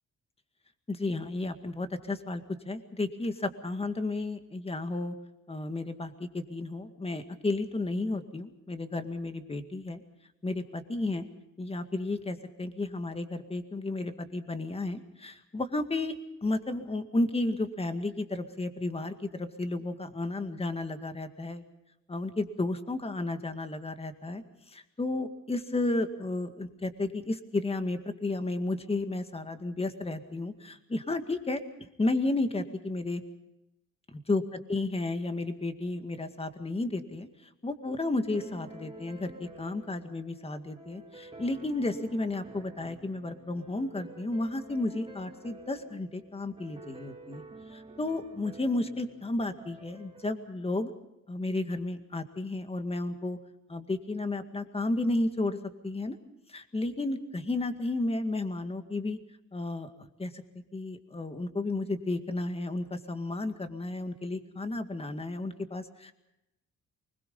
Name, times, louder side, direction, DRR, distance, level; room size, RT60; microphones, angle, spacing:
voice 1, 0.9-5.2 5.5-10.0 10.4-11.3 11.6-21.6 22.1-24.4 24.7-33.2 34.3-37.3 37.6-47.4 47.7-50.9 51.3-53.4 53.7-55.6 55.8-56.2 56.5-59.2 59.5-59.9 60.2-60.4 60.7-66.1, left 2 dB, 20° left, 8 dB, 2.0 m, -32 dB
sound 1, 38.3-50.3, right 2 dB, 15° right, 3.2 m, -49 dB
24.0 x 21.0 x 5.5 m, 0.91 s
cardioid pair, 90°, 30 cm